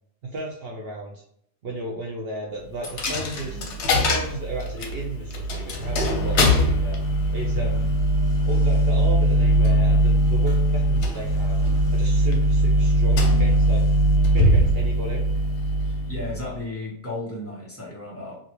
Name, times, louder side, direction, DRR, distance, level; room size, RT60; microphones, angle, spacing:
voice 1, 0.2-1.2 1.6-3.6 3.9-7.0 7.3-7.9 8.5-11.6 11.9-13.8 14.2-15.2, right 2 dB, 70° right, -2 dB, 0.5 m, -34 dB
Coin (dropping), 2.8-16.6, right 1 dB, 90° left, 1.3 m, -21 dB
voice 2, 15.9-18.4, left 2 dB, 10° left, -5 dB, 0.7 m, -34 dB
3.1 x 2.6 x 2.9 m, 0.65 s
omnidirectional pair, 1.7 m